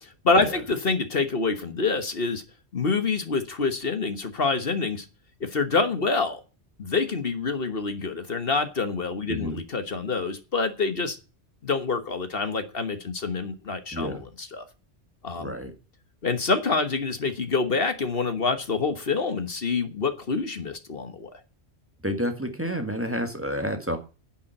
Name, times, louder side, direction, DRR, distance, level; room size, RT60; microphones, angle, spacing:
voice 1, 0.0-2.4 2.7-5.1 5.4-6.4 6.8-11.2 11.6-14.6 15.2-15.5 16.2-21.4, left 4 dB, 55° left, 9 dB, 1.5 m, -26 dB
voice 2, 13.9-14.2 15.4-15.7 22.0-24.0, equal, 10° right, 6 dB, 1.8 m, -29 dB
10.5 x 7.3 x 8.9 m, 0.32 s
omnidirectional pair, 1.1 m